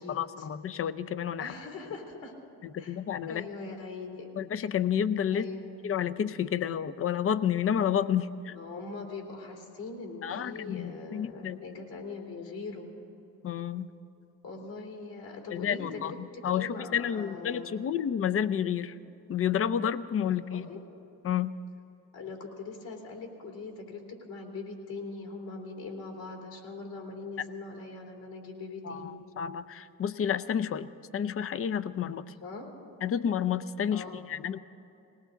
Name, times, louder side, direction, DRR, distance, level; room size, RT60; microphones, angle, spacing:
voice 1, 0.0-1.5 2.6-3.5 4.4-5.5 5.8-8.6 10.2-11.6 13.4-13.9 15.5-19.0 19.3-20.7 21.2-21.6 28.8-32.3 33.0-34.6, left 8 dB, 35° left, 13 dB, 0.6 m, -30 dB
voice 2, 1.4-2.3 2.8-3.0 3.3-4.3 5.3-5.7 8.5-12.9 14.4-17.7 20.2-20.8 22.1-24.0 24.3-29.2 32.4-32.7 33.9-34.2, left 3 dB, 70° left, 0 dB, 3.4 m, -41 dB
20.0 x 18.0 x 3.9 m, 2.7 s
supercardioid pair, 80°, 38 cm